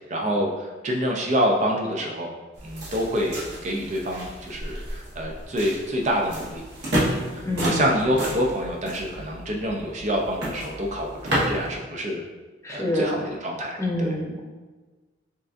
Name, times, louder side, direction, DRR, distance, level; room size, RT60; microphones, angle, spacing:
voice 1, 0.1-2.3 2.6-6.6 7.0-12.2 12.7-14.1, equal, 40° right, 0 dB, 0.5 m, -27 dB
sound 1, 2.5-11.8, right 1 dB, 60° right, 1.3 m, -31 dB
voice 2, 7.4-7.9 12.6-13.2 13.8-14.4, left 1 dB, 15° left, -3 dB, 0.8 m, -26 dB
7.1 x 2.5 x 2.5 m, 1.3 s
head